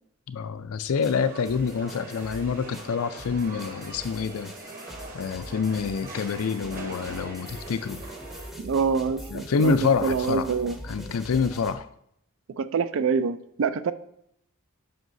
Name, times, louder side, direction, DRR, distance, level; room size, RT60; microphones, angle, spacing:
voice 1, 0.3-4.5 5.1-8.0 9.3-10.5 10.8-11.9, left 5 dB, 75° left, 11 dB, 0.4 m, -27 dB
sound 1, 0.8-11.8, equal, ahead, 0.5 m, -43 dB
sound 2, 1.1-8.5, right 2 dB, 40° right, 1.0 m, -42 dB
voice 2, 8.6-9.8 10.0-10.8 12.6-13.9, right 5 dB, 60° right, 14 dB, 0.3 m, -26 dB
7.8 x 5.4 x 2.6 m, 0.72 s
head